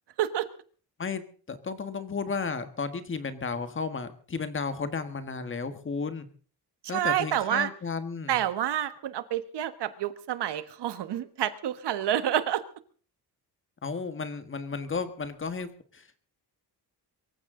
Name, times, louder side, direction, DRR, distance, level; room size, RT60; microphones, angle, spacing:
voice 1, 1.5-6.3 6.9-8.4 13.8-16.3, left 5 dB, 30° left, 11 dB, 1.6 m, -33 dB
voice 2, 6.9-7.7 8.3-12.6, right 11 dB, 80° right, 12 dB, 1.4 m, -28 dB
24.0 x 14.5 x 3.8 m, 0.40 s
wide cardioid pair, 170°, 40 cm